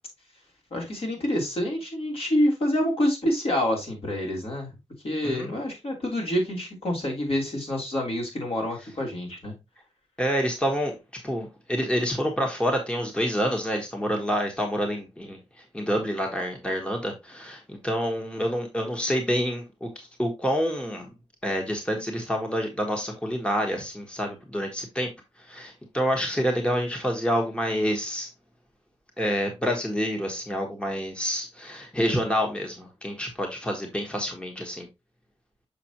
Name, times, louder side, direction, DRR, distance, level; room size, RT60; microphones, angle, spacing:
voice 1, 0.7-4.7 5.0-9.5, left 1 dB, 55° left, 3.3 m, -27 dB
voice 2, 10.2-10.9 11.2-21.1 21.4-25.1 25.4-28.3 29.2-34.9, equal, 10° left, 1.2 m, -28 dB
6.8 x 5.5 x 2.9 m
wide cardioid pair, 140°, 11 cm